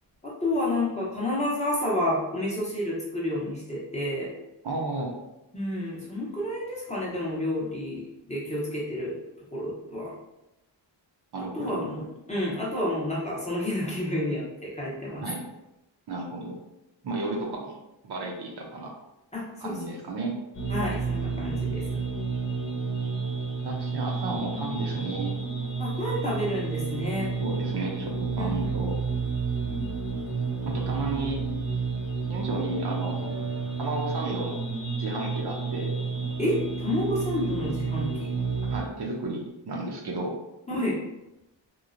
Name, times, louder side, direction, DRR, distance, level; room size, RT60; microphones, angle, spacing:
voice 1, 0.2-4.3 5.5-9.1 9.5-10.1 11.4-15.3 19.3-19.7 20.7-22.0 25.8-27.3 28.4-28.7 36.4-38.3 40.7-41.0, left 1 dB, 15° left, -6 dB, 0.6 m, -30 dB
voice 2, 4.6-5.1 11.3-11.9 15.2-15.4 16.1-16.6 17.0-17.8 18.0-18.9 19.6-20.4 23.6-25.4 27.4-29.0 30.7-31.4 32.3-33.3 33.8-34.7 35.0-35.9 38.7-40.4, right 2 dB, 60° right, -1 dB, 0.6 m, -33 dB
sound 1, 20.5-38.8, right 5 dB, 65° left, 0.7 m, -30 dB
2.9 x 2.1 x 2.4 m, 0.91 s
wide cardioid pair, 140°, 46 cm